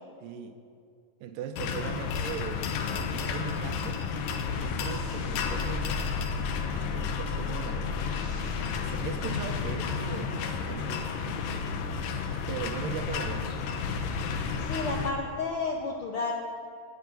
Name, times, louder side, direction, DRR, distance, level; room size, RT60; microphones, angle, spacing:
voice 1, 0.2-0.6 1.2-2.7 3.0-6.1 6.7-8.1 8.8-11.7 12.1-13.5, right 7 dB, 85° right, 8 dB, 2.4 m, -39 dB
sound 1, 1.6-15.1, left 5 dB, 85° left, 2.6 m, -32 dB
sound 2, 4.7-10.0, left 6 dB, 45° left, 3.6 m, -38 dB
voice 2, 14.6-16.3, left 3 dB, 70° left, 0 dB, 1.3 m, -31 dB
13.5 x 6.3 x 9.3 m, 2.3 s
omnidirectional pair, 3.8 m